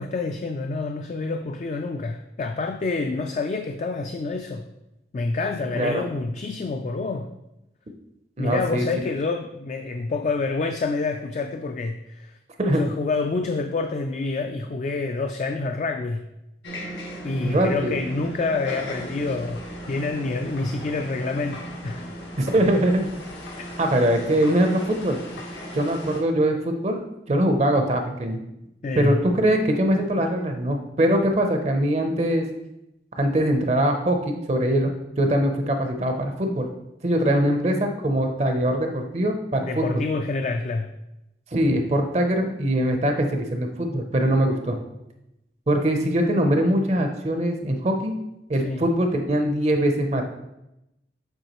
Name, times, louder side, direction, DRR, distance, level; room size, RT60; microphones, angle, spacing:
voice 1, 0.0-4.6 5.1-7.3 8.4-12.3 12.7-16.2 17.2-22.1 23.6-23.7 28.8-29.2 39.6-40.9 48.6-48.8, left 3 dB, 40° left, 5 dB, 0.3 m, -27 dB
voice 2, 8.4-8.9 12.6-12.8 17.4-18.0 22.4-23.0 23.8-25.2 25.7-27.0 27.3-28.4 28.9-32.5 33.2-36.7 37.0-40.0 41.5-44.8 45.7-48.1 48.5-50.2, right 1 dB, 35° right, 4 dB, 0.5 m, -22 dB
sound 1, 16.6-26.2, equal, 90° left, 1.3 m, -37 dB
7.9 x 4.4 x 3.0 m, 0.89 s
head